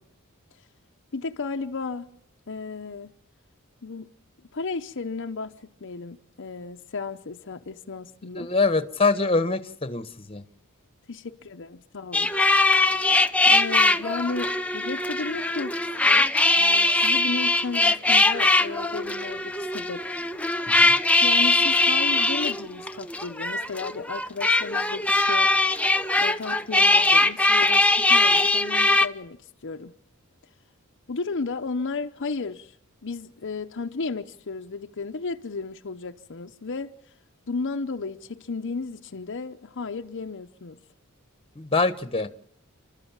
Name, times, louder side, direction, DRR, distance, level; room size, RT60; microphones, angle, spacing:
voice 1, 1.1-2.1 2.5-3.1 3.8-4.1 4.5-8.5 11.1-12.3 13.5-16.3 16.6-20.2 21.2-25.5 26.2-29.9 31.1-32.8 33.0-36.9 37.5-40.8, left 4 dB, 60° left, 0.8 m, -34 dB
voice 2, 8.3-10.4 20.8-20.9 41.6-42.3, left 3 dB, 25° left, 1.2 m, -24 dB
sound 1, 12.1-29.1, left 2 dB, 5° left, 0.8 m, -21 dB
29.5 x 12.5 x 7.4 m
head